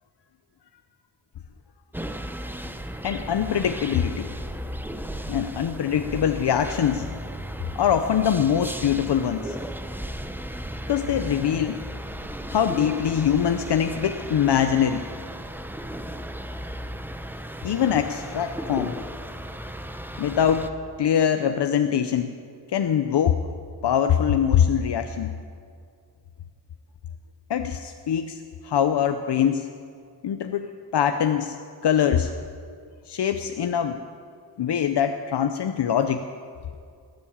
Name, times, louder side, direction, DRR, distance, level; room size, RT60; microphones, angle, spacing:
sound 1, 1.9-20.7, equal, 5° right, 0.6 m, -35 dB
voice 1, 3.0-4.3 5.3-7.0 7.8-9.6 10.9-11.8 12.5-15.0 17.6-19.0 20.2-20.7 21.0-22.3 22.7-23.4 23.8-25.3 27.5-29.7 30.2-31.5 31.8-32.3 33.1-34.0 34.6-36.2, left 8 dB, 80° left, 7 dB, 0.7 m, -23 dB
20.0 x 7.7 x 8.7 m, 2.3 s
wide cardioid pair, 135°, 41 cm